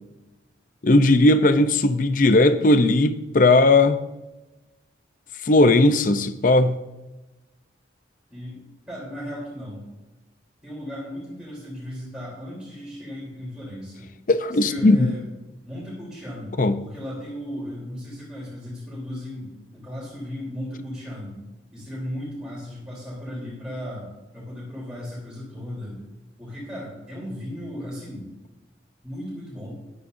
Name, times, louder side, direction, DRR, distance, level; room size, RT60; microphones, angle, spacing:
voice 1, 0.8-4.0 5.5-6.7 14.3-15.1 16.6-16.8, left 2 dB, 50° left, 0.6 m, -17 dB
voice 2, 8.9-9.9 10.6-14.1 14.5-15.3 15.6-21.4 21.7-26.0 26.4-28.3 29.0-29.8, equal, 5° right, 3.4 m, -36 dB
13.5 x 11.5 x 2.7 m
head